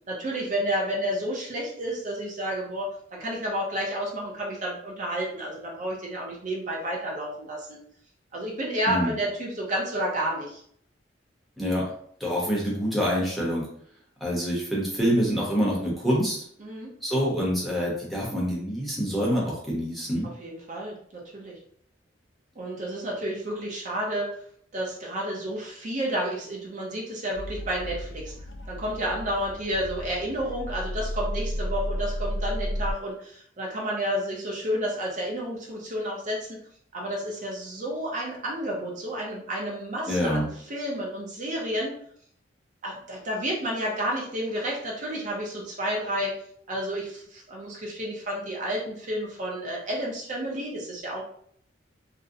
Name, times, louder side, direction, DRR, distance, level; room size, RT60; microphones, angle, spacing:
voice 1, 0.1-7.8 8.3-10.6 16.6-16.9 20.4-21.5 22.6-24.3 24.7-28.3 28.7-36.5 36.9-42.0 42.8-46.3 46.7-51.2, equal, 45° right, -2 dB, 0.6 m, -31 dB
voice 2, 11.6-11.9 12.2-13.7 14.2-16.5 17.0-20.3 40.1-40.5, equal, ahead, -6 dB, 0.7 m, -26 dB
sound 1, 27.3-32.9, equal, 70° left, 0.3 m, -33 dB
2.5 x 2.0 x 2.6 m, 0.63 s
head